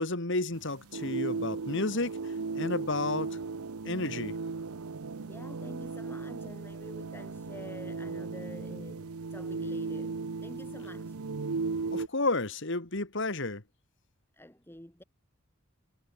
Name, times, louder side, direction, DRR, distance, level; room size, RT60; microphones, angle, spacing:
voice 1, 0.0-3.4 3.8-4.4 11.9-13.6, left 2 dB, 55° left, 2.4 m, -32 dB
sound 1, 0.5-12.1, right 4 dB, 90° right, 0.8 m, -36 dB
voice 2, 5.2-11.2 14.3-15.0, left 1 dB, 10° left, 2.0 m, -48 dB
head